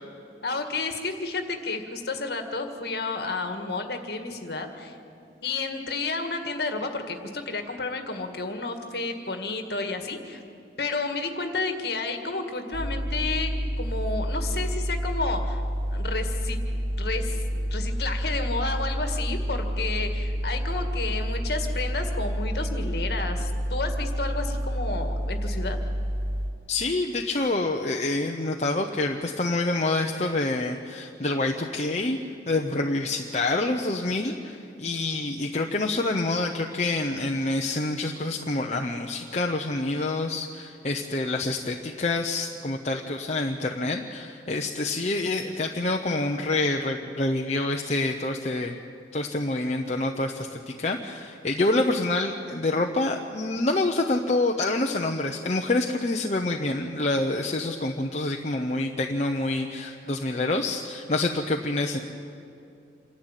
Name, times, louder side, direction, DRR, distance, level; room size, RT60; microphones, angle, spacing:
voice 1, 0.4-5.0 5.4-10.4 10.8-15.6 15.9-16.6 17.0-25.8, left 3 dB, 60° left, 6 dB, 1.9 m, -31 dB
sound 1, 12.7-26.5, equal, 50° right, 1.9 m, -29 dB
voice 2, 26.7-32.2 32.5-48.8 49.1-62.0, left 2 dB, 35° left, 2 dB, 0.8 m, -27 dB
27.0 x 11.5 x 9.1 m, 2.5 s
head